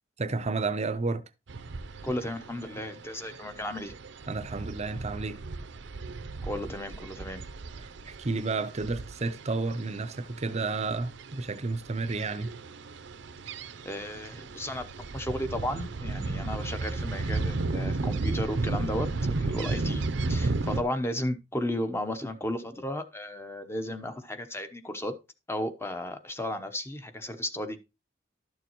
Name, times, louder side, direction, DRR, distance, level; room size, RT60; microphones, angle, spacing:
voice 1, 0.2-1.2 4.3-5.4 7.8-12.5, right 3 dB, 35° right, 0.6 m, -31 dB
sound 1, 1.5-20.8, right 3 dB, 70° right, 0.6 m, -34 dB
voice 2, 2.0-3.9 6.4-7.4 13.8-25.1 25.5-27.8, left 1 dB, 15° left, 0.8 m, -34 dB
12.5 x 6.7 x 3.0 m
head